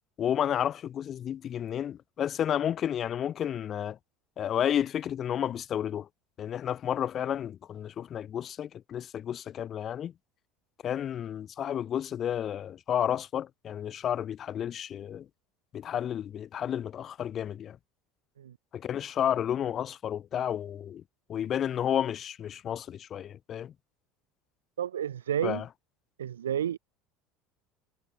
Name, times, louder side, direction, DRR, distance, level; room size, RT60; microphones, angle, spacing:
voice 1, 0.2-4.0 4.4-6.1 6.4-10.1 10.8-15.3 15.7-17.8 18.7-21.0 21.3-23.7 25.4-25.6, left 9 dB, 45° left, 0.7 m, -31 dB
voice 2, 24.8-25.6 26.2-26.8, right 10 dB, 85° right, 1.1 m, -31 dB
hypercardioid pair, 70°, 0 cm